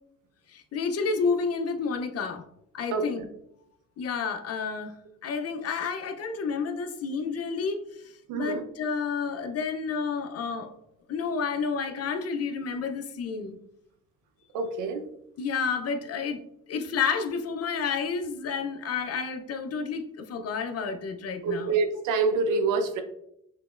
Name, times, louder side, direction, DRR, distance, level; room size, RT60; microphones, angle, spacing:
voice 1, 0.5-2.4 2.7-3.3 4.0-4.9 5.2-10.8 11.1-13.6 15.4-16.4 16.7-21.8, left 5 dB, 55° left, 8 dB, 0.6 m, -30 dB
voice 2, 8.3-8.6 14.5-15.0 21.4-23.0, right 4 dB, 85° right, 7 dB, 0.7 m, -26 dB
5.8 x 3.0 x 2.4 m, 0.77 s
cardioid pair, 90°, 30 cm